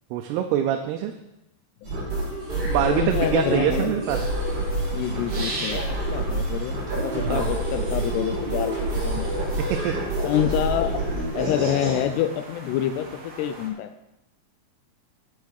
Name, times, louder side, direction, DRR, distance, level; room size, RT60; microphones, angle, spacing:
voice 1, 0.1-1.1 2.7-4.3 7.2-7.5 9.7-9.9, right 10 dB, 85° right, 5 dB, 2.7 m, -25 dB
sound 1, 1.8-12.0, right 1 dB, 30° right, 4.2 m, -27 dB
voice 2, 2.9-3.9 4.9-5.8 6.1-9.5 10.2-11.0 11.3-13.1 13.4-13.9, left 11 dB, 85° left, 9 dB, 2.7 m, -27 dB
sound 2, 4.4-13.7, right 2 dB, 45° right, 1.8 m, -40 dB
8.5 x 7.7 x 6.4 m, 0.90 s
omnidirectional pair, 4.6 m